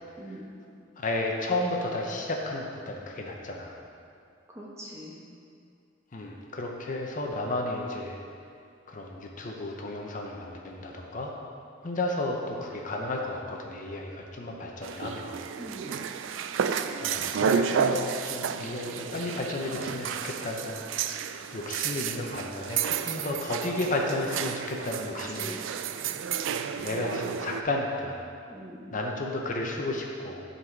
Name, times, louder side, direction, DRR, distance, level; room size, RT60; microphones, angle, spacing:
voice 1, 0.2-0.5 4.5-5.2 15.6-16.0 25.4-25.7 28.5-28.9, equal, 15° right, -4 dB, 1.1 m, -42 dB
voice 2, 1.0-3.8 6.1-8.2 8.9-11.3 11.8-15.4 17.0-20.8 21.5-25.5 26.8-28.2 28.9-30.4, left 2 dB, 45° left, 0 dB, 0.7 m, -32 dB
sound 1, 14.8-27.6, right 7 dB, 85° right, 0.3 m, -31 dB
10.0 x 4.1 x 4.5 m, 2.4 s
head